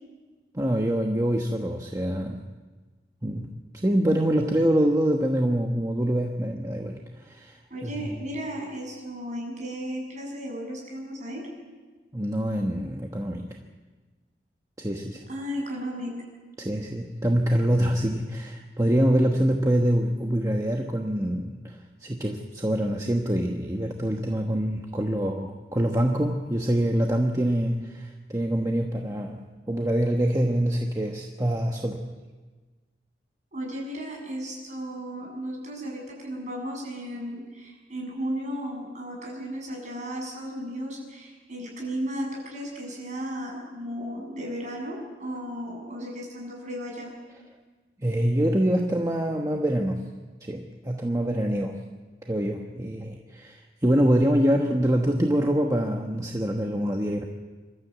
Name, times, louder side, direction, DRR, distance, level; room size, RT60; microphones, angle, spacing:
voice 1, 0.5-2.5 3.2-8.2 12.1-13.6 14.8-15.2 16.6-32.0 48.0-50.1 50.4-51.8 52.3-57.3, right 1 dB, 20° right, 2 dB, 1.2 m, -25 dB
voice 2, 7.7-11.5 15.3-16.1 33.5-47.1, equal, 40° right, -1 dB, 7.2 m, -34 dB
27.5 x 13.0 x 8.2 m, 1.4 s
head